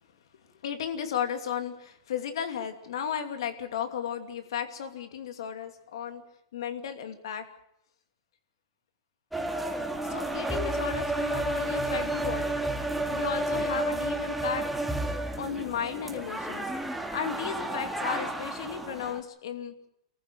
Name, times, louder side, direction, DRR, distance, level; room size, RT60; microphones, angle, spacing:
voice 1, 0.6-6.2 6.5-7.5 10.0-12.6 13.1-14.7 15.4-16.7 17.1-19.7, left 8 dB, 75° left, 8 dB, 2.8 m, -34 dB
sound 1, 9.3-19.2, right 1 dB, 5° right, 2.1 m, -31 dB
24.0 x 14.5 x 9.5 m, 0.79 s
hypercardioid pair, 130°, 3 cm